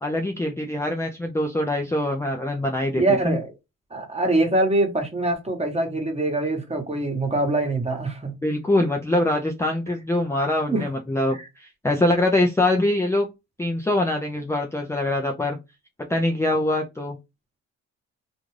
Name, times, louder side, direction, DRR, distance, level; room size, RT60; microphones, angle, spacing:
voice 1, 0.0-3.3 8.4-13.3 13.6-15.6 16.1-17.2, left 1 dB, 10° left, 0.4 m, -23 dB
voice 2, 3.0-3.5 3.9-8.3 8.8-8.9 10.7-10.9 11.3-11.4, right 2 dB, 20° right, 1.1 m, -24 dB
2.5 x 2.3 x 3.1 m
cardioid pair, 90°, 30 cm